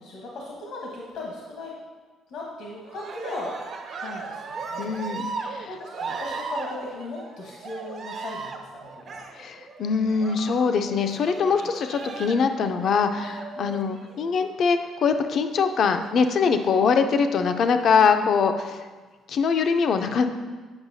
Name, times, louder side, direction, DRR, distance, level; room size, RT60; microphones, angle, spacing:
voice 1, 0.0-1.8 2.3-5.0 5.7-9.2 13.5-13.7, left 2 dB, 75° left, -2 dB, 1.0 m, -37 dB
Cheering, 2.8-14.5 15.8-16.7 17.4-18.0, right 4 dB, 45° right, 0.6 m, -37 dB
voice 2, 4.8-5.7 9.4-18.9 19.3-20.2, left 5 dB, 50° left, 7 dB, 0.4 m, -23 dB
8.8 x 5.5 x 2.7 m, 1.4 s
cardioid pair, 130°, 0 cm